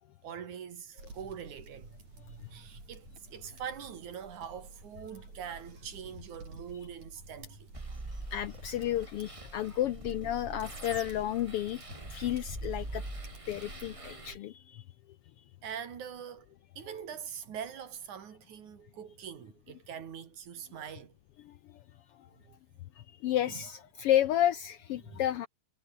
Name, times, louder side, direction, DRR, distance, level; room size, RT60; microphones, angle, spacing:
voice 1, 0.2-7.7 15.6-16.5 16.8-21.1 22.4-22.6 23.5-23.6 25.0-25.2, right 8 dB, 90° right, 3.9 m, -43 dB
sound 1, 1.0-14.4, right 3 dB, 70° right, 9.5 m, -52 dB
sound 2, 7.7-14.3, right 2 dB, 15° right, 1.3 m, -43 dB
voice 2, 8.3-11.8 12.1-13.0 13.5-14.8 21.4-21.8 22.2-22.3 23.0-25.5, left 12 dB, 75° left, 1.3 m, -31 dB
omnidirectional pair, 3.3 m